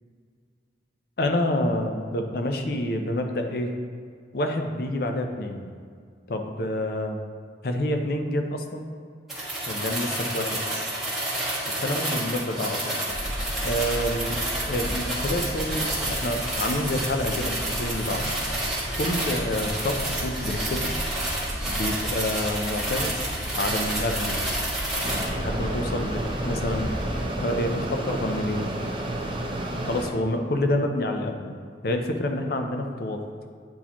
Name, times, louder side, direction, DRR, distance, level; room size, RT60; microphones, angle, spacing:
voice 1, 1.2-3.7 4.3-5.7 6.3-7.2 7.6-8.9 9.7-10.6 11.8-13.0 13.6-14.4 14.7-18.3 19.0-21.0 21.6-23.2 23.5-24.4 25.4-26.9 27.4-28.8 29.9-31.6 31.8-33.2, left 1 dB, 55° left, 5 dB, 0.5 m, -28 dB
sound 1, 9.3-25.3, right 1 dB, ahead, 1.4 m, -30 dB
sound 2, 13.1-27.2, equal, 80° left, 1.2 m, -35 dB
Mechanisms, 25.0-30.1, right 1 dB, 30° right, 0.6 m, -31 dB
8.5 x 4.2 x 2.9 m, 2.1 s
head